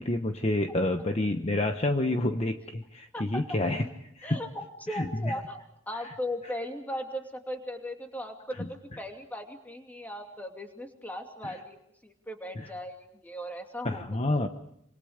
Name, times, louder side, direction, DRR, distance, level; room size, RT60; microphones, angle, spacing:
voice 1, 0.0-3.9 4.2-4.4 4.9-5.3 5.9-6.1 11.4-11.6 12.6-12.7 13.8-14.5, left 1 dB, 30° left, 5 dB, 1.1 m, -29 dB
voice 2, 4.2-11.8 12.0-14.0, left 1 dB, 10° left, 3 dB, 2.7 m, -38 dB
26.5 x 26.5 x 5.1 m, 0.75 s
head